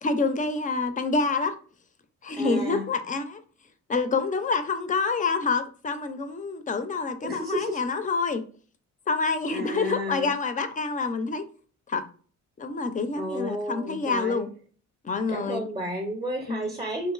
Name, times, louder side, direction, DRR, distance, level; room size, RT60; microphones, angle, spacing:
voice 1, 0.0-1.5 2.2-3.4 3.9-8.4 9.1-11.4 11.9-12.0 12.6-14.5 15.0-15.6 16.5-16.6, left 4 dB, 25° left, 0.4 m, -27 dB
voice 2, 2.3-2.8 7.2-7.8 9.5-10.3 13.2-14.4 15.3-17.1, equal, 20° right, 0.6 m, -32 dB
2.9 x 2.5 x 2.4 m
cardioid pair, 90°, 30 cm